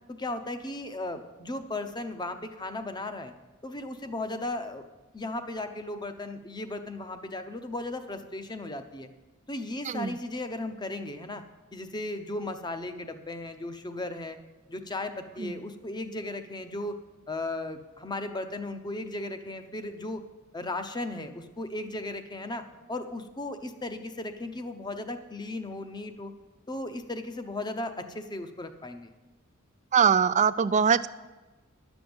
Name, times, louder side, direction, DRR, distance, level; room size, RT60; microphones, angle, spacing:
voice 1, 0.1-3.3 3.6-4.8 5.1-9.1 9.5-11.4 11.7-14.4 14.7-17.0 17.3-20.2 20.5-22.6 22.9-26.3 26.7-29.1, left 2 dB, 20° left, 9 dB, 0.8 m, -36 dB
voice 2, 29.9-31.1, right 7 dB, 35° right, 14 dB, 0.4 m, -22 dB
11.5 x 7.0 x 7.8 m, 1.2 s
head